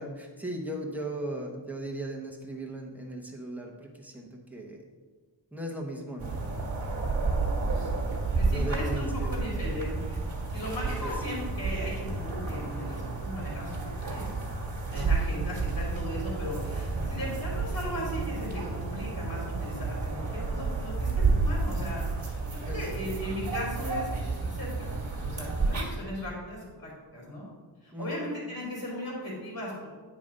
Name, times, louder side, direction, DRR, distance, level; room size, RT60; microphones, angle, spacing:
voice 1, 0.0-4.8 5.5-6.5 8.5-9.5 11.0-11.1 14.9-15.2 22.7-23.0 27.9-28.3, right 1 dB, 5° right, 0 dB, 0.9 m, -37 dB
sound 1, 6.2-25.8, right 3 dB, 40° right, 1.6 m, -31 dB
voice 2, 8.3-10.2 10.5-14.3 14.9-24.1 24.4-27.5 27.8-29.9, equal, 45° left, -4 dB, 2.5 m, -37 dB
9.2 x 3.7 x 5.3 m, 1.4 s
wide cardioid pair, 155°, 45 cm